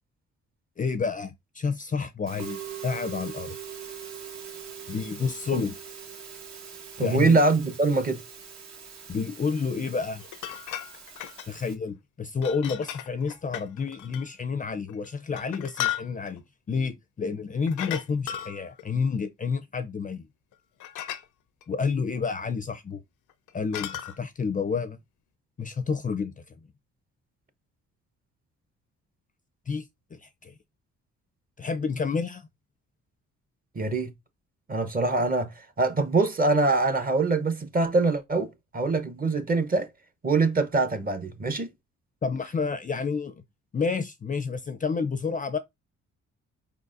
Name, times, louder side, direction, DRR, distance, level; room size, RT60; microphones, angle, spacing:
voice 1, 0.8-3.6 4.9-5.8 7.0-7.4 9.1-10.2 11.5-20.3 21.7-23.0 23.5-25.0 25.6-26.3 29.7-29.8 30.1-30.5 31.6-32.4 42.2-43.3 43.7-45.6, left 5 dB, 25° left, 0.5 m, -29 dB
Musical instrument, 2.3-11.7, right 8 dB, 65° right, 1.3 m, -42 dB
voice 2, 7.0-8.2 33.7-34.1 34.7-39.9 40.2-41.7, right 3 dB, 30° right, 0.8 m, -24 dB
sound 1, 10.2-11.5 12.4-14.3 14.9-16.4 17.7-18.9 20.5-20.6 20.8-21.2 21.6-21.7 23.3-24.2, left 11 dB, 80° left, 0.6 m, -35 dB
4.9 x 4.0 x 2.5 m
cardioid pair, 90°, 30 cm